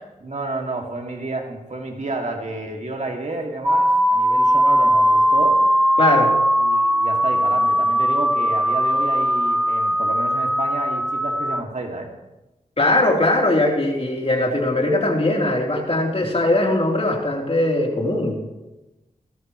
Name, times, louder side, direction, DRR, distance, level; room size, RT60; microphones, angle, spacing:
voice 1, 0.2-5.6 6.5-12.1, right 2 dB, 50° right, 2 dB, 2.6 m, -30 dB
sound 1, 3.7-11.6, equal, ahead, 0.5 m, -19 dB
voice 2, 6.0-6.3 12.8-18.4, left 1 dB, 40° left, -1 dB, 3.8 m, -20 dB
18.5 x 14.0 x 3.2 m, 1.0 s
cardioid pair, 45°, 15 cm